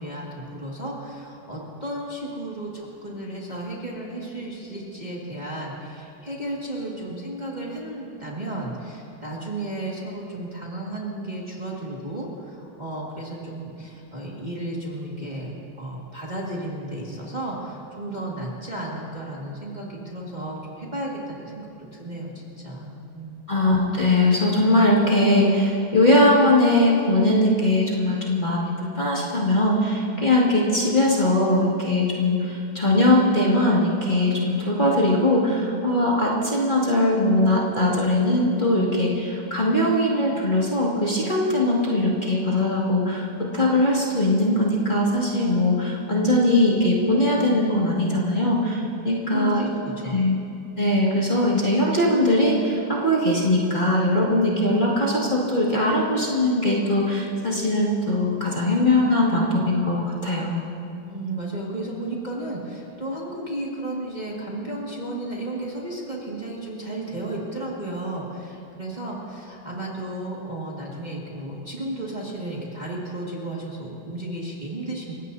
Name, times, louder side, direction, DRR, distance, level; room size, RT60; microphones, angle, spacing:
voice 1, 0.0-15.5 15.8-21.7 21.9-23.4 49.2-50.2 61.1-75.1, right 1 dB, 20° right, -5 dB, 2.0 m, -33 dB
voice 2, 23.5-49.6 50.1-50.4 50.8-60.6, left 1 dB, 25° left, -5 dB, 2.2 m, -21 dB
29.5 x 16.5 x 2.8 m, 2.7 s
omnidirectional pair, 2.2 m